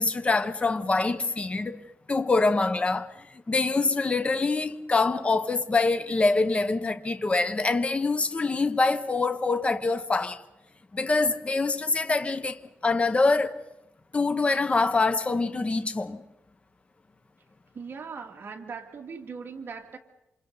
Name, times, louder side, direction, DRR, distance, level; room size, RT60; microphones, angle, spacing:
voice 1, 0.0-1.8 2.1-10.4 10.9-13.6 14.1-16.2, left 3 dB, 25° left, 1.1 m, -25 dB
voice 2, 17.7-20.0, right 5 dB, 50° right, 2.3 m, -39 dB
27.5 x 26.5 x 4.0 m
wide cardioid pair, 125°, 5 cm